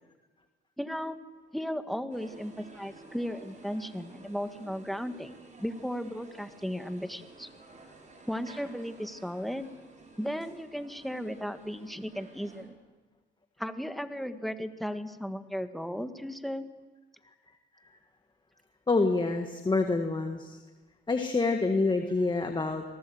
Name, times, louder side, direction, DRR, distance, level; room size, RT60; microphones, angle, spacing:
voice 1, 0.8-1.2 1.5-5.3 5.6-7.5 8.3-9.7 10.2-12.8 13.6-16.7, equal, ahead, 8 dB, 1.7 m, -35 dB
sound 1, 2.1-12.7, right 2 dB, 40° right, 6.4 m, -52 dB
voice 2, 18.9-20.6 21.1-22.8, left 3 dB, 25° left, 5 dB, 1.8 m, -27 dB
26.0 x 18.5 x 8.0 m, 1.3 s
cardioid pair, 90°, 20 cm